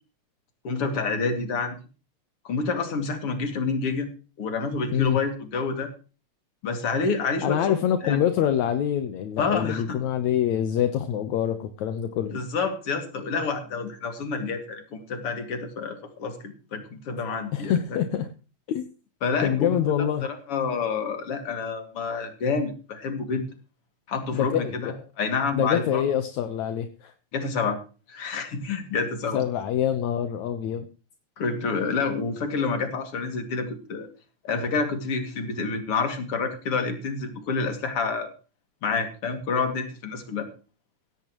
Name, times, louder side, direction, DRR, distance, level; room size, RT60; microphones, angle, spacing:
voice 1, 0.6-1.8 2.4-4.1 4.4-5.9 6.6-7.8 8.0-8.2 9.4-10.0 12.3-17.7 19.2-23.4 24.1-26.0 27.3-27.8 28.1-29.4 31.4-34.1 34.4-38.3 38.8-40.5, left 4 dB, 50° left, 6 dB, 3.2 m, -28 dB
voice 2, 7.4-12.3 17.5-18.3 18.7-18.9 19.4-20.3 24.3-25.1 25.5-27.1 29.3-30.9, left 10 dB, 75° left, 8 dB, 2.4 m, -25 dB
16.5 x 15.5 x 3.1 m, 0.35 s
omnidirectional pair, 3.4 m